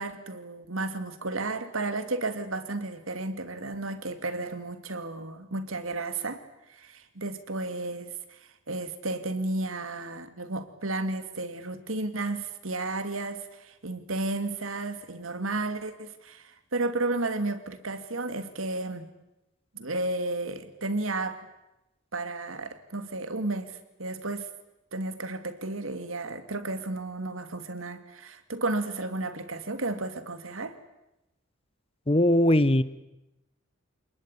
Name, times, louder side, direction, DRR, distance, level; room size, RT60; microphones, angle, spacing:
voice 1, 0.0-6.4 6.7-8.4 8.7-19.1 19.7-21.5 22.1-24.5 24.9-30.8, right 2 dB, 90° right, 2.6 m, -33 dB
voice 2, 32.1-32.8, left 1 dB, 30° left, 1.1 m, -20 dB
28.0 x 20.5 x 10.0 m
head